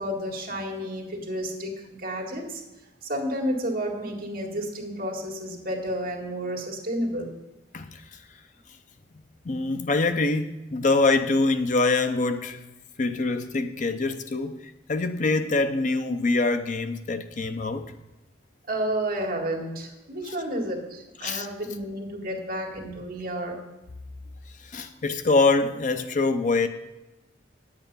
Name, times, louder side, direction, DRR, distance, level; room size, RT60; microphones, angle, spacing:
voice 1, 0.0-2.6 3.0-7.3 18.7-23.6, equal, 50° right, 1.9 m, -31 dB
voice 2, 7.7-8.2 9.4-12.6 13.0-14.6 14.9-17.9 21.2-21.5 24.6-26.7, left 3 dB, 40° left, 0.5 m, -24 dB
9.5 x 8.1 x 5.4 m
head